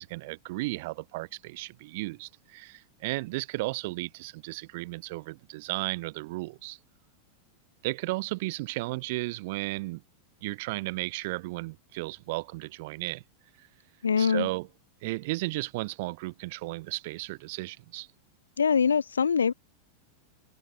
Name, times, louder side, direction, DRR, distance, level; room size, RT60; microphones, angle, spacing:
voice 1, 0.0-6.8 7.8-10.0 10.4-13.2 14.2-14.7 15.0-18.1, right 22 dB, 50° right, 1.1 m, -34 dB
voice 2, 14.0-14.5 18.6-19.5, left 6 dB, 70° left, 0.4 m, -23 dB
figure-of-eight pair, 90°, 0 cm